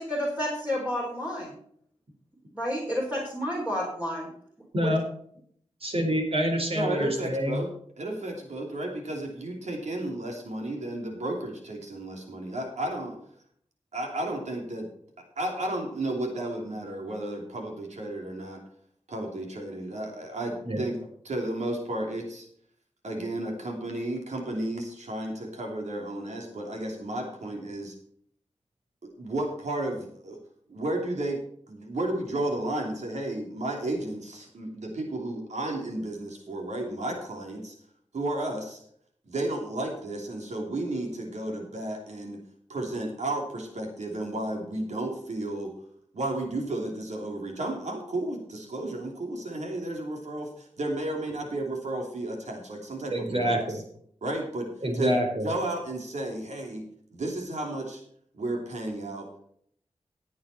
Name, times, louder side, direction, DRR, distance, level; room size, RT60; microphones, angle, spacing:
voice 1, 0.0-1.5 2.5-4.3 4.8-4.9, equal, 15° right, -3 dB, 4.2 m, -30 dB
voice 2, 5.8-7.6 20.6-20.8 53.1-53.8 54.8-55.5, equal, 55° right, 3 dB, 4.4 m, -26 dB
voice 3, 6.7-7.7 8.0-13.2 13.9-14.9 15.4-18.6 19.1-21.0 21.2-22.5 23.0-27.9 29.2-30.4 30.7-31.4 31.7-37.7 38.1-38.8 39.3-42.4 42.7-45.7 46.1-53.6 54.2-55.1 55.4-56.8 57.1-58.0 58.3-59.3, right 1 dB, 80° right, 2 dB, 3.1 m, -33 dB
15.0 x 8.7 x 4.3 m, 0.63 s
wide cardioid pair, 80°, 12 cm